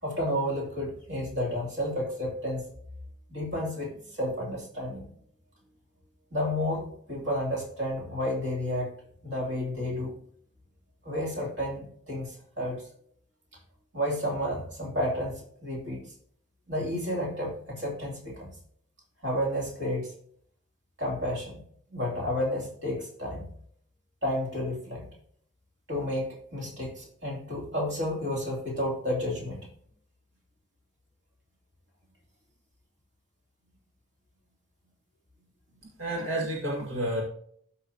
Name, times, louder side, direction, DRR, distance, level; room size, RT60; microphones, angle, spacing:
voice 1, 0.0-2.7 3.3-5.0 6.3-8.9 9.2-10.2 11.0-12.8 13.9-16.0 16.7-18.5 19.2-20.1 21.0-21.6 21.9-23.5 24.2-25.1 25.9-29.6, left 1 dB, 60° right, -1 dB, 2.8 m, -31 dB
voice 2, 36.0-37.2, right 1 dB, 90° right, -2 dB, 1.9 m, -30 dB
13.0 x 5.5 x 2.8 m, 0.62 s
head